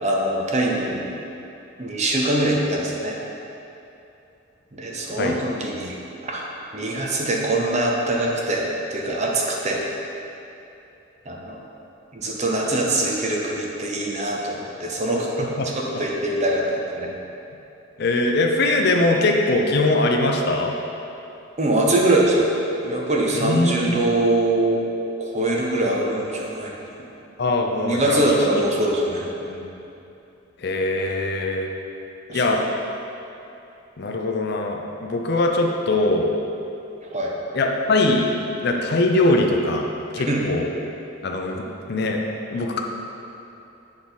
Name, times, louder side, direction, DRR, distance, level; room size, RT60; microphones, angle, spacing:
voice 1, 0.0-1.0 1.8-3.2 4.7-5.9 6.2-8.6 8.9-9.8 11.3-11.6 12.1-15.5 15.7-17.1 21.6-22.5 22.8-24.8 25.2-27.1 27.8-29.6 32.3-32.6 37.1-37.3 40.3-40.4, right 1 dB, 35° right, -2 dB, 0.7 m, -23 dB
voice 2, 18.0-20.7 23.3-24.0 27.4-28.6 30.6-31.7 32.3-32.6 34.0-36.3 37.5-38.3 38.6-39.9 40.1-40.7 41.2-42.2 42.5-42.8, left 2 dB, 55° left, 2 dB, 0.5 m, -21 dB
8.0 x 3.6 x 4.0 m, 2.8 s
head